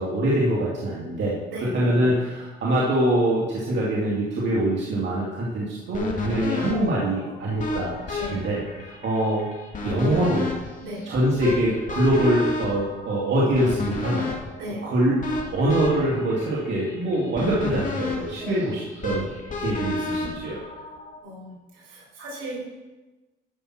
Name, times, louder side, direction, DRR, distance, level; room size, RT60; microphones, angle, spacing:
voice 1, 0.0-1.4 1.7-9.5 9.8-10.5 11.1-14.3 14.8-20.6, right 1 dB, 65° right, -6 dB, 2.4 m, -24 dB
sound 1, 5.9-21.2, left 3 dB, 40° left, 2.2 m, -32 dB
voice 2, 21.2-22.7, right 1 dB, 85° right, -4 dB, 4.0 m, -36 dB
11.5 x 5.7 x 6.0 m, 1.2 s
cardioid pair, 90°, 20 cm